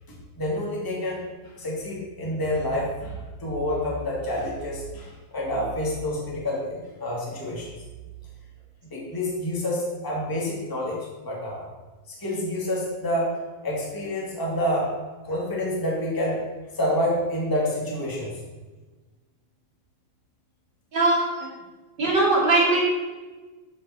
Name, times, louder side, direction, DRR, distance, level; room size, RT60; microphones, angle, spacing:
voice 1, 0.4-1.2 1.5-7.7 8.9-11.7 12.2-13.4 13.6-14.9 15.2-16.4 16.7-18.3, left 1 dB, 5° left, -4 dB, 2.4 m, -28 dB
voice 2, 20.9-21.5 22.0-22.8, right 2 dB, 35° right, -3 dB, 3.0 m, -20 dB
12.0 x 8.1 x 4.4 m, 1.3 s
omnidirectional pair, 3.5 m